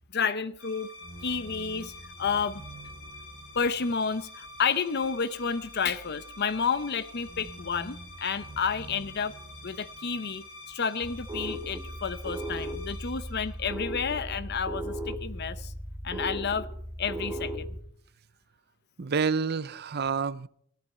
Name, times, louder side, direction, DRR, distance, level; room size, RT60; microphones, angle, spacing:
voice 1, 0.1-0.9 1.2-1.9 2.2-2.6 3.5-9.3 9.6-15.7 16.0-16.7 17.0-17.7, left 6 dB, 50° left, 0.7 m, -30 dB
sound 1, 0.6-14.2, left 1 dB, 80° left, 4.9 m, -46 dB
sound 2, 11.0-17.8, equal, 15° right, 1.8 m, -36 dB
voice 2, 19.0-20.5, right 5 dB, 50° right, 0.5 m, -28 dB
18.0 x 13.5 x 4.3 m
head